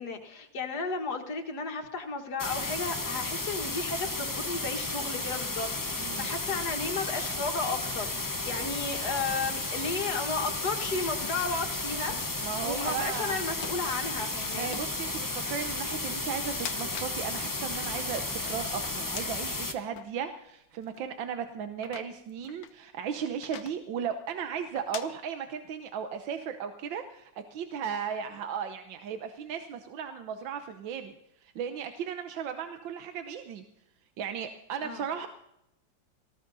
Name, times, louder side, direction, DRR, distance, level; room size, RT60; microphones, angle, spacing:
voice 1, 0.0-12.1 12.6-14.8 34.8-35.0, left 4 dB, 60° left, 4 dB, 2.1 m, -34 dB
sound 1, 2.4-19.7, left 2 dB, 20° left, 0.5 m, -33 dB
voice 2, 6.0-6.3 12.4-13.4 14.6-31.1 31.4-33.6 34.2-35.3, right 7 dB, 85° right, 7 dB, 1.7 m, -36 dB
sound 2, 10.4-10.5 11.1-11.4 12.1-12.4 12.9-13.2 13.6-13.8 14.5-14.9 15.5-15.6 16.4-17.2 17.6-19.5 20.0-20.1 20.8-21.0 21.7-22.7 23.4-23.8 24.8-25.1, left 9 dB, 85° left, 1.6 m, -43 dB
18.5 x 15.0 x 4.0 m, 0.80 s
omnidirectional pair, 2.0 m